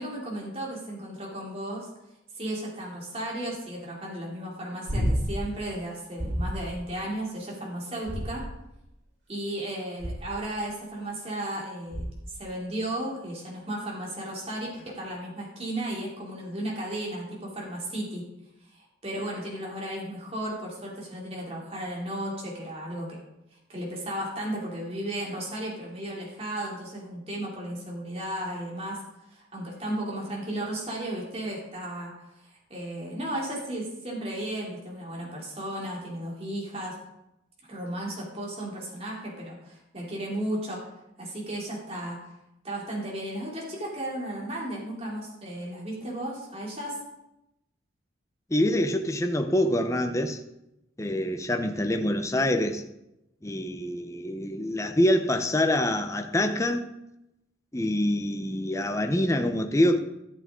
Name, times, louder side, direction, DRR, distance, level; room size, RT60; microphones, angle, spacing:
voice 1, 0.0-1.9 2.3-8.4 9.3-18.3 18.7-23.2 23.5-29.0 29.3-37.0 37.7-40.9 41.2-42.2 42.6-47.0, right 1 dB, 30° right, 3.0 m, -34 dB
sound 1, 4.9-5.5 6.2-6.7 8.0-8.8 10.0-10.5 11.9-12.4 14.7-14.8, equal, 90° right, 3.9 m, -30 dB
voice 2, 48.5-50.4 51.0-52.8 53.4-56.9 57.7-60.0, left 1 dB, 15° left, 0.8 m, -25 dB
14.0 x 7.9 x 3.8 m
head